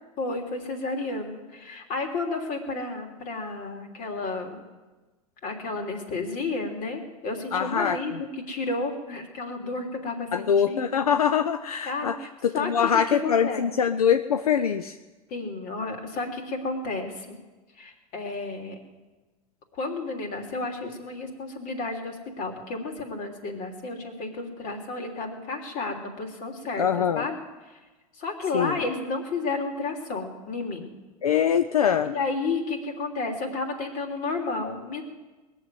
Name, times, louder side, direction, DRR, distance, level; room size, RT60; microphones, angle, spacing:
voice 1, 0.2-4.6 5.4-10.9 11.9-12.7 13.0-13.6 15.3-17.4 17.8-18.8 19.7-26.9 27.1-27.4 27.6-27.7 28.2-30.9 32.0-35.0, left 3 dB, 50° left, 3 dB, 3.2 m, -32 dB
voice 2, 7.5-8.0 10.3-12.2 12.4-14.9 26.8-27.3 28.5-28.8 31.2-32.1, left 8 dB, 85° left, 9 dB, 0.6 m, -23 dB
20.5 x 7.4 x 9.3 m, 1.2 s
hypercardioid pair, 90°, 19 cm